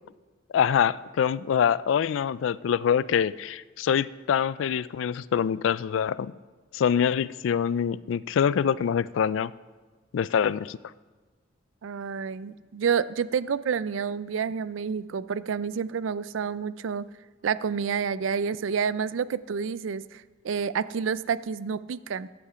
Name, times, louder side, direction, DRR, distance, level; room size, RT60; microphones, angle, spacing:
voice 1, 0.5-6.3 6.7-9.5 10.1-10.8, left 8 dB, 80° left, 19 dB, 0.3 m, -25 dB
voice 2, 11.8-17.1 17.4-22.3, right 6 dB, 85° right, 17 dB, 0.4 m, -29 dB
14.0 x 8.6 x 4.9 m, 1.3 s
head